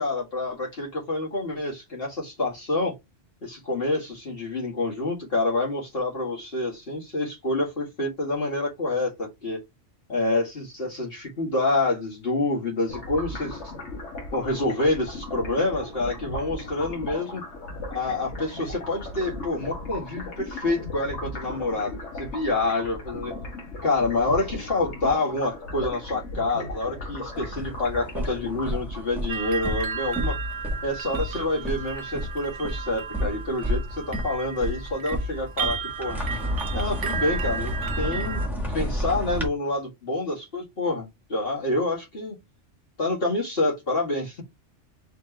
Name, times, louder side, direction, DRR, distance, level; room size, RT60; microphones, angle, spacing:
voice 1, 0.0-2.9 3.4-9.6 10.1-13.6 14.3-17.4 17.9-23.3 23.8-30.4 30.8-36.2 36.7-38.4 38.7-42.4 43.0-44.4, left 2 dB, 50° left, 2.1 m, -27 dB
sound 1, 12.9-29.3, left 2 dB, 70° left, 1.6 m, -37 dB
Steps on wood bridge, 27.3-39.5, equal, ahead, 1.4 m, -31 dB
sound 2, 29.3-38.5, right 6 dB, 80° right, 1.0 m, -34 dB
4.9 x 2.9 x 3.3 m
omnidirectional pair, 1.2 m